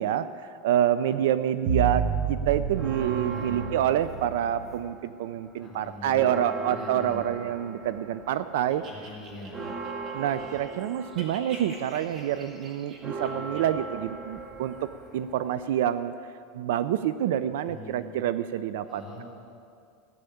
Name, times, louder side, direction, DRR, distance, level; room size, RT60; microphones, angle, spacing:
voice 1, 0.0-8.8 10.1-16.1 16.5-19.2, right 10 dB, 80° right, 13 dB, 0.5 m, -27 dB
sound 1, 1.7-4.7, right 6 dB, 55° right, 0.9 m, -30 dB
sound 2, 2.7-5.1 5.5-16.0, right 3 dB, 20° right, 1.1 m, -40 dB
voice 2, 3.2-3.6 5.6-7.2 8.8-9.7 17.6-18.0 18.8-19.2, left 1 dB, ahead, -8 dB, 4.7 m, -43 dB
sound 3, 8.7-10.8 11.1-13.6, right 2 dB, 35° right, 2.4 m, -46 dB
15.5 x 9.9 x 7.1 m, 2.4 s
supercardioid pair, 155°, 0 cm